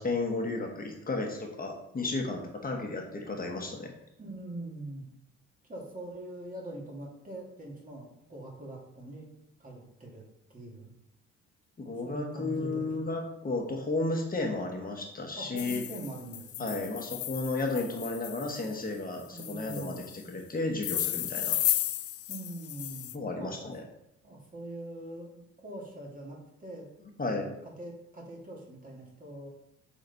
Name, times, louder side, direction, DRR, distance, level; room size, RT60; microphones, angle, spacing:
voice 1, 0.0-3.9 11.8-15.8 16.6-21.6 23.1-23.8 27.2-27.5, left 2 dB, 30° left, 1 dB, 1.3 m, -33 dB
voice 2, 4.2-5.1 5.7-9.3 9.6-10.2 10.5-10.9 12.0-13.0 15.4-16.9 19.3-20.0 22.3-23.1 23.4-23.5 24.2-26.9 27.2-29.5, right 1 dB, 25° right, -2 dB, 2.0 m, -43 dB
sound 1, 15.6-18.7 19.4-20.2 20.8-23.2, left 13 dB, 55° left, 0.4 m, -34 dB
6.0 x 4.2 x 4.0 m, 0.80 s
cardioid pair, 90°, 30 cm